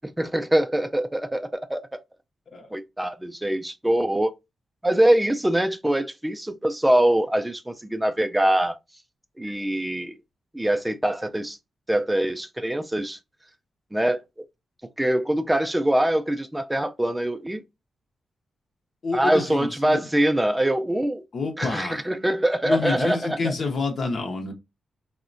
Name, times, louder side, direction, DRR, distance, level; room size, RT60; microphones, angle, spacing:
voice 1, 0.0-2.0 2.7-4.3 4.8-8.8 9.4-10.2 10.5-11.6 11.9-13.2 13.9-14.2 15.0-17.6 19.1-21.2 21.6-23.5, right 1 dB, 10° right, 0.3 m, -23 dB
voice 2, 19.0-20.1 21.3-22.0 22.6-24.5, left 4 dB, 50° left, 0.6 m, -28 dB
3.6 x 2.1 x 2.5 m
wide cardioid pair, 120°, 0 cm